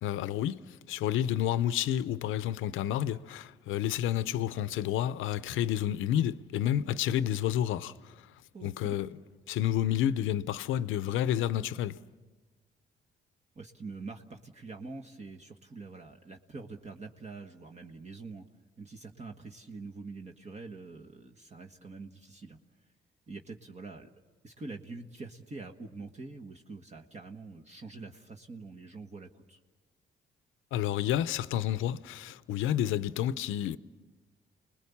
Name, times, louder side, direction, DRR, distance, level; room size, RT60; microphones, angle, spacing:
voice 1, 0.0-8.2 8.6-9.2 9.5-12.0 30.7-33.8, left 11 dB, 90° left, 0.7 m, -30 dB
voice 2, 8.5-9.1 13.5-18.4 18.8-22.6 23.3-24.1 24.4-29.6, right 3 dB, 35° right, 1.4 m, -45 dB
29.5 x 20.5 x 7.2 m
cardioid pair, 90°, 20 cm